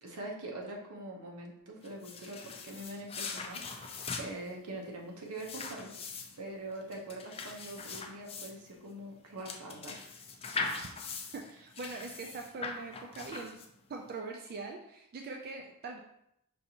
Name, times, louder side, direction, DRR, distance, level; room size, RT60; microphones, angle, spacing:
voice 1, 0.0-5.9 6.4-10.0, right 1 dB, 80° right, 0 dB, 0.9 m, -43 dB
sound 1, 1.8-14.0, left 4 dB, 25° left, 0.4 m, -41 dB
voice 2, 11.3-13.6 13.9-16.0, right 3 dB, 45° right, 2 dB, 0.3 m, -42 dB
5.3 x 2.6 x 2.8 m, 0.79 s
head